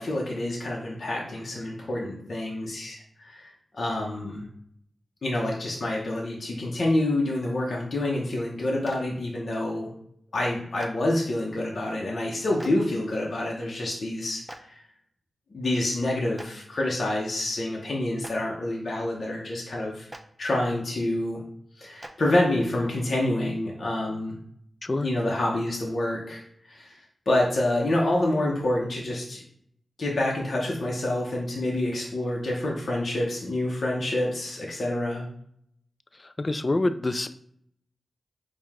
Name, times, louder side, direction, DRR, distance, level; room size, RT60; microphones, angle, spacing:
voice 1, 0.0-3.4 3.7-4.5 5.2-9.9 10.3-14.8 15.5-20.1 20.4-21.4 21.7-24.3 25.0-27.0 27.3-29.4 30.0-35.2, left 1 dB, 65° left, -3 dB, 0.8 m, -27 dB
Clapping, 8.8-9.0 10.8-10.9 12.6-12.7 14.5-14.6 16.4-16.5 18.2-18.3 20.1-20.2 22.0-22.1, right 1 dB, 15° right, 0.5 m, -40 dB
voice 2, 36.2-37.4, left 2 dB, 40° left, 11 dB, 0.3 m, -27 dB
4.5 x 2.4 x 3.5 m, 0.68 s
cardioid pair, 40°, 0 cm